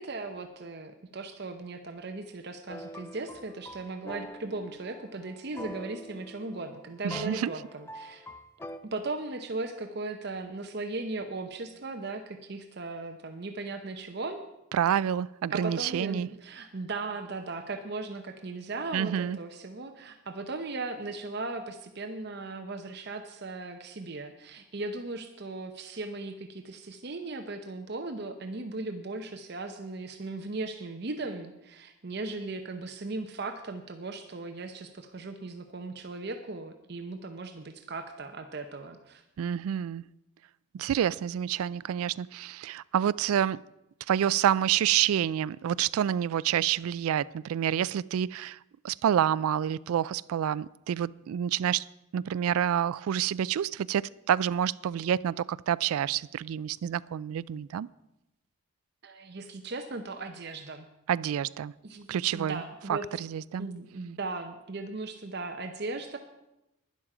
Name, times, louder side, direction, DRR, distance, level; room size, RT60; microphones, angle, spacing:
voice 1, 0.0-8.3 8.9-14.4 15.5-39.2 59.0-60.9 61.8-63.2 63.6-66.2, right 3 dB, 50° right, 0.7 m, -37 dB
sound 1, 2.7-8.8, equal, 10° left, 0.4 m, -45 dB
voice 2, 7.0-7.5 14.7-16.3 18.9-19.4 39.4-40.0 40.7-43.6 44.1-48.6 48.8-51.8 52.1-57.9 61.1-61.7 62.1-62.6 62.9-63.7, right 9 dB, 85° right, 0.3 m, -28 dB
11.5 x 10.5 x 4.9 m
head